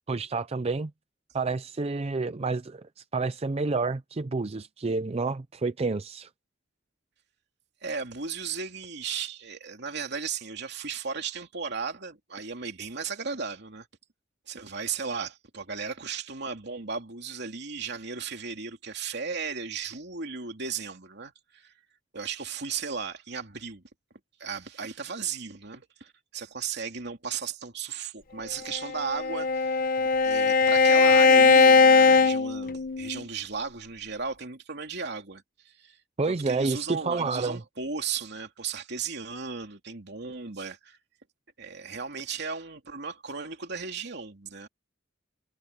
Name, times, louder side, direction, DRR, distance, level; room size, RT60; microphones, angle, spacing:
voice 1, 0.1-0.9 1.3-6.3 36.2-37.6, right 3 dB, 30° right, 0.5 m, -29 dB
voice 2, 7.8-13.9 14.5-21.7 22.1-23.8 24.4-29.9 30.2-36.0 36.3-41.0 41.6-44.7, right 5 dB, 60° right, 3.0 m, -35 dB
Bowed string instrument, 28.7-33.2, left 4 dB, 50° left, 0.9 m, -20 dB
head